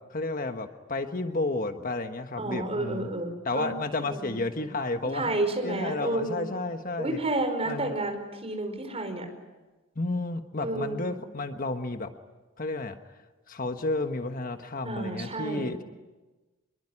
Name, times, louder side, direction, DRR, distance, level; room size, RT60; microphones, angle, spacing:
voice 1, 0.1-3.1 3.4-5.3 5.6-7.2 7.6-7.9 10.0-12.1 12.6-13.0 13.5-15.8, left 2 dB, 40° left, 7 dB, 1.3 m, -31 dB
voice 2, 2.4-3.7 4.0-4.4 5.0-6.4 7.0-9.3 10.6-11.1 14.8-15.7, right 2 dB, 30° right, 5 dB, 5.0 m, -31 dB
26.0 x 22.0 x 9.9 m, 1.2 s
head